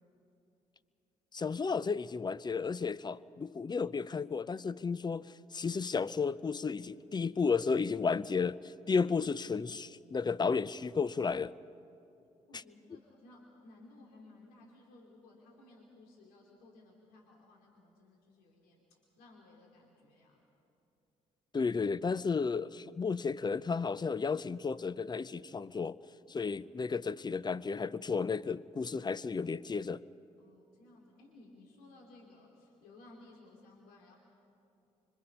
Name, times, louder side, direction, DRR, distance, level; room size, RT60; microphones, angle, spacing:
voice 1, 1.3-11.5 12.5-12.6 21.5-26.0 26.3-30.0, left 5 dB, 25° left, 19 dB, 0.6 m, -33 dB
voice 2, 12.5-18.8 19.2-20.4 26.4-26.5 30.4-34.2, left 2 dB, 70° left, -1 dB, 2.8 m, -58 dB
25.5 x 24.0 x 5.5 m, 2.7 s
hypercardioid pair, 45°, 16 cm